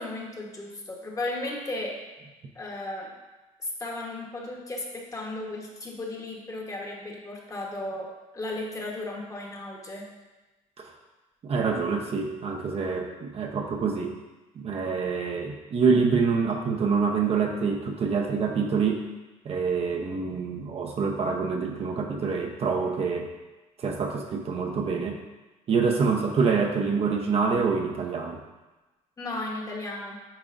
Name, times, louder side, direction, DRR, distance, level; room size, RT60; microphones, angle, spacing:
voice 1, 0.0-2.0 2.5-3.1 3.6-8.1 8.3-10.0 29.2-30.2, left 2 dB, 20° left, -1 dB, 1.2 m, -35 dB
voice 2, 11.4-14.1 14.6-19.0 19.4-23.3 23.8-25.2 25.7-28.4, right 5 dB, 45° right, 2 dB, 0.8 m, -26 dB
9.0 x 4.8 x 2.5 m, 1.1 s
cardioid pair, 115°, 14 cm